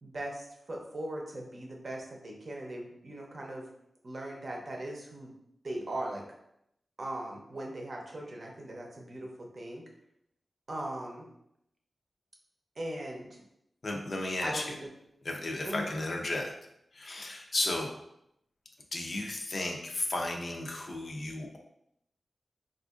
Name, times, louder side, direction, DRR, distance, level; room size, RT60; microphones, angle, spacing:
voice 1, 0.0-3.7 4.0-5.3 5.6-6.2 7.0-9.8 10.7-11.3 12.8-13.3 14.4-14.8 15.6-15.9, right 1 dB, 50° right, 0 dB, 0.7 m, -39 dB
voice 2, 13.8-14.8 15.2-16.5 16.9-17.9 18.9-21.6, left 2 dB, 50° left, 1 dB, 0.5 m, -34 dB
4.2 x 2.4 x 2.4 m, 0.78 s
wide cardioid pair, 110°, 0 cm